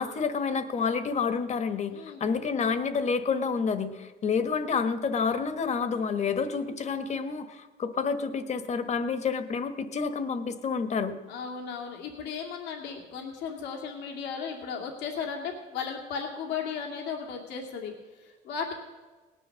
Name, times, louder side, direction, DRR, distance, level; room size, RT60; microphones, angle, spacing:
voice 1, 0.0-11.2, left 5 dB, 40° left, 10 dB, 1.3 m, -29 dB
voice 2, 1.9-2.2 11.3-18.7, left 6 dB, 90° left, 0 dB, 2.3 m, -36 dB
18.0 x 10.5 x 6.4 m, 1.3 s
cardioid pair, 110°, 17 cm